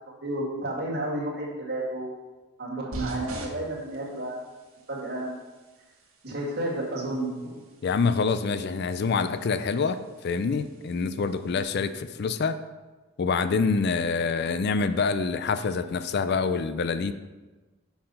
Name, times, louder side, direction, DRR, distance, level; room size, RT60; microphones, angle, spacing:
voice 1, 0.1-2.1 2.6-4.5 4.9-5.4 6.2-7.6, right 1 dB, 50° right, -3 dB, 2.0 m, -31 dB
sound 1, 2.9-11.6, right 1 dB, 75° right, 1.5 m, -45 dB
voice 2, 7.8-12.6 13.2-17.1, left 4 dB, 50° left, 12 dB, 0.4 m, -26 dB
6.5 x 5.8 x 5.4 m, 1.2 s
head